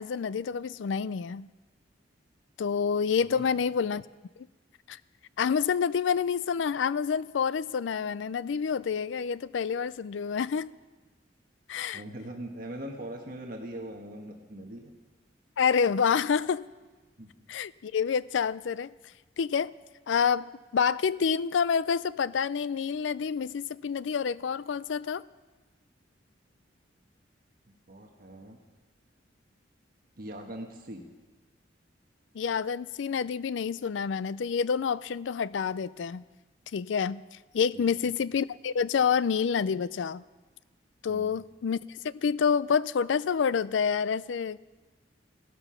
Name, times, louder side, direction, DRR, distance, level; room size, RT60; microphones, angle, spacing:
voice 1, 0.0-1.5 2.6-4.0 4.9-5.0 5.4-10.7 11.7-12.0 15.6-16.7 17.5-18.9 19.4-19.7 20.1-25.3 32.3-36.2 36.7-37.2 37.5-40.2 41.0-44.6, left 6 dB, 85° left, 19 dB, 0.4 m, -28 dB
voice 2, 3.2-3.6 11.9-14.9 17.2-17.3 27.7-28.6 30.2-31.0 37.7-38.1 41.1-41.4, right 1 dB, 50° right, 1 dB, 1.5 m, -41 dB
16.5 x 12.5 x 5.7 m, 1.3 s
head